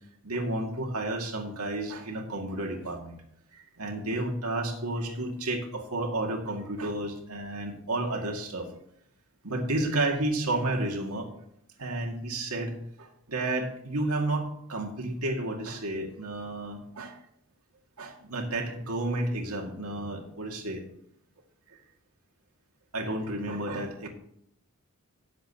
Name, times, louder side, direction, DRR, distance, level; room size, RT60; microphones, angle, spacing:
voice 1, 0.2-3.2 3.5-8.7 9.4-11.3 11.8-17.2 18.0-20.8 21.7-21.8 22.9-24.1, right 2 dB, 90° right, 1 dB, 2.2 m, -31 dB
18.0 x 7.6 x 2.9 m, 0.72 s
head